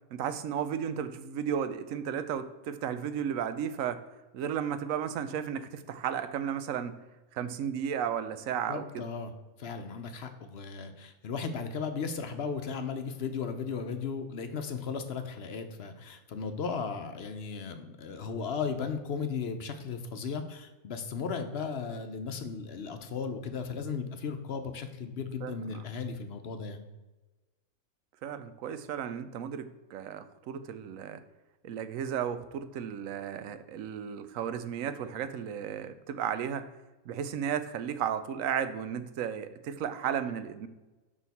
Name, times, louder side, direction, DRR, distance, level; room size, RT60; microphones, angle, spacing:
voice 1, 0.1-4.0 4.3-6.9 7.3-9.0 25.4-25.8 28.2-31.2 31.6-36.7 37.1-40.7, right 8 dB, 85° right, 11 dB, 1.0 m, -34 dB
voice 2, 8.7-9.3 9.6-26.8, left 5 dB, 60° left, 7 dB, 0.8 m, -36 dB
6.2 x 5.5 x 4.1 m, 1.1 s
omnidirectional pair, 1.3 m